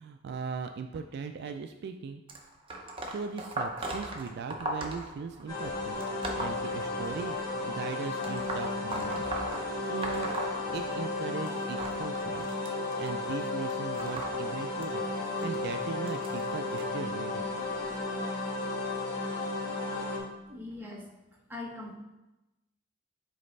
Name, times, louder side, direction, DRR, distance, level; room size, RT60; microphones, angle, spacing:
voice 1, 0.0-2.2 3.1-6.0 6.4-10.4 10.7-12.6 13.0-15.1 15.4-17.4, right 5 dB, 55° right, 6 dB, 0.3 m, -39 dB
sound 1, 2.3-7.4 8.2-11.2 11.5-16.8 17.6-17.9 18.9-19.0 19.9-20.0 20.7-20.8, right 1 dB, 30° right, 0.7 m, -38 dB
sound 2, 5.5-20.2, left 2 dB, 20° left, 1.7 m, -34 dB
voice 2, 20.5-22.0, left 2 dB, 10° right, -3 dB, 1.0 m, -42 dB
7.5 x 4.2 x 3.2 m, 1.0 s
head